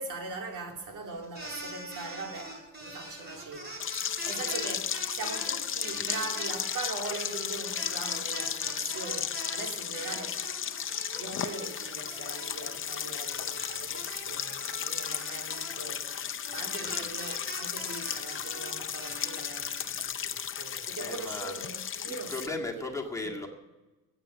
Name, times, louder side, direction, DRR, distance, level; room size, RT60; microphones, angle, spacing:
voice 1, 0.0-10.5 11.1-22.6 23.2-23.3, right 3 dB, 65° right, 2.5 m, -41 dB
sound 1, 1.2-9.6 9.9-20.0, right 1 dB, 30° right, 4.5 m, -43 dB
sound 2, 3.8-22.5, left 8 dB, 40° left, 0.8 m, -35 dB
voice 2, 16.8-17.1 21.0-21.7 22.0-23.5, left 2 dB, 10° left, 2.0 m, -37 dB
14.5 x 8.6 x 7.6 m
cardioid pair, 135°, 33 cm